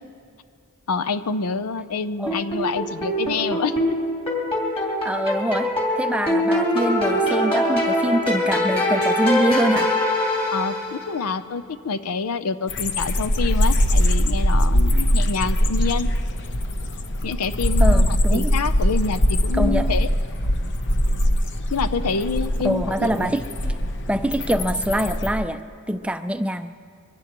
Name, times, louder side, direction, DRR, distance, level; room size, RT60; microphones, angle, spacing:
voice 1, 0.9-4.0 10.5-16.1 17.2-20.1 21.7-23.3, left 4 dB, 85° left, 11 dB, 0.6 m, -27 dB
sound 1, 2.3-11.1, left 1 dB, 25° left, 3.1 m, -23 dB
voice 2, 5.0-5.7 6.0-9.9 17.8-18.5 19.5-19.9 22.6-23.8 24.1-25.6 25.9-26.7, right 1 dB, 5° right, 8 dB, 0.4 m, -24 dB
sound 2, 12.7-25.3, equal, 55° left, 0.9 m, -21 dB
23.5 x 18.0 x 3.0 m, 2.4 s
head